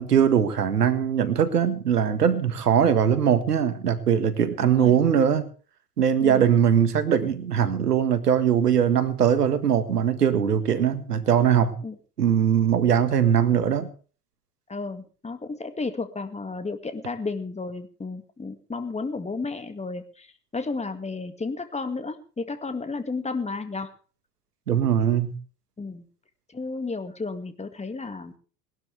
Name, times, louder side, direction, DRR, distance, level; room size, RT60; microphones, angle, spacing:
voice 1, 0.0-5.5 6.0-11.7 12.2-13.9 24.7-25.3, right 8 dB, 85° right, 1.8 m, -21 dB
voice 2, 4.6-5.0 6.2-6.4 11.8-12.0 14.7-23.9 25.8-26.1 26.5-28.4, left 3 dB, 15° left, 2.1 m, -33 dB
20.0 x 12.0 x 3.4 m
figure-of-eight pair, 75°, 46 cm